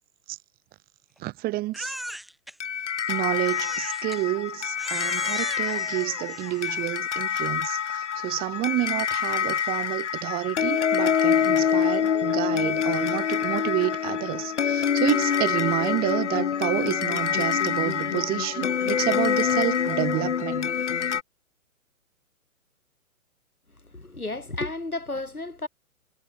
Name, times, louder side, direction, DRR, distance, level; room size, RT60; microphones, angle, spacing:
voice 1, 1.2-1.9 3.1-20.7, right 18 dB, 20° right, 3.4 m, -29 dB
Crying sobbing, 1.7-2.5 3.4-4.2 4.8-6.9, equal, ahead, 0.6 m, -38 dB
sound 1, 2.6-21.2, left 8 dB, 55° left, 3.3 m, -26 dB
voice 2, 23.9-25.7, left 2 dB, 85° left, 2.8 m, -32 dB
figure-of-eight pair, 120°, 43 cm